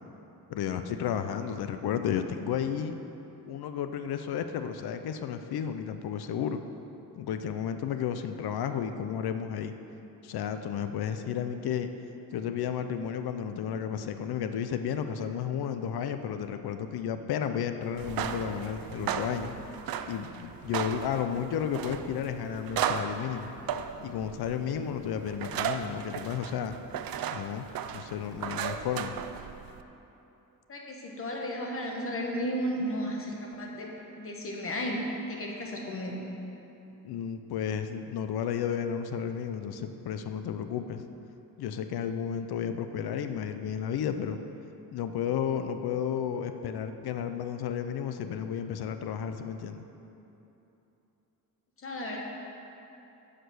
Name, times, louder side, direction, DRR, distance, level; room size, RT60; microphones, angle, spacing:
voice 1, 0.5-3.0 3.5-6.6 7.2-9.7 10.2-11.9 12.3-19.5 20.1-23.5 24.0-26.8 27.3-27.7 27.9-29.1 37.0-41.1 41.6-44.4 44.9-49.8, left 8 dB, 90° left, 8 dB, 0.6 m, -32 dB
sound 1, 17.9-29.8, right 8 dB, 70° right, 0.6 m, -36 dB
voice 2, 30.7-33.9 34.2-35.0 35.3-36.2 51.8-52.2, equal, 35° left, 0 dB, 1.1 m, -34 dB
14.5 x 5.1 x 6.3 m, 3.0 s
wide cardioid pair, 160°, 37 cm